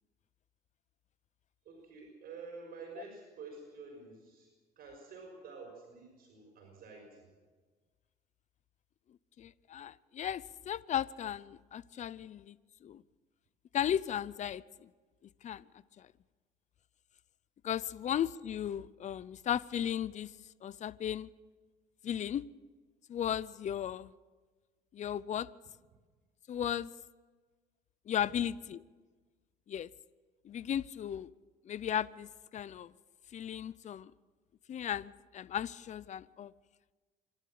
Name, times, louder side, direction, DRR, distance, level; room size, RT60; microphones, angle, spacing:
voice 1, 1.6-7.3, right 4 dB, 60° right, 1 dB, 6.1 m, -49 dB
voice 2, 9.4-12.6 12.8-13.0 13.7-14.9 15.4-15.6 16.0-16.1 17.6-20.3 20.6-21.3 22.0-22.4 23.1-24.1 24.9-25.5 26.5-26.9 28.1-28.8 29.7-29.9 30.4-31.3 31.6-32.9 33.3-34.1 34.7-36.5, left 10 dB, 45° left, 19 dB, 0.6 m, -36 dB
27.0 x 12.5 x 7.7 m, 1.4 s
cardioid pair, 110°, 17 cm